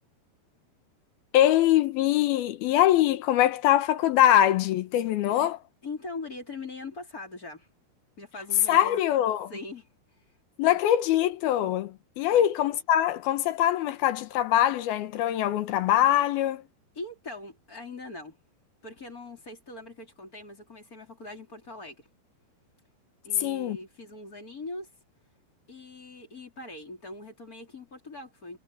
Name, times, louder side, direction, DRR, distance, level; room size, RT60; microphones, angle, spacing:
voice 1, 1.3-5.6 8.7-9.5 10.6-16.6 23.4-23.8, left 12 dB, 70° left, 2.9 m, -23 dB
voice 2, 5.8-7.7 8.2-9.0 9.5-9.9 10.6-10.8 12.3-12.5 17.0-18.4 18.8-22.1 23.2-24.9 25.7-28.6, left 2 dB, 20° left, 3.6 m, -41 dB
omnidirectional pair, 4.9 m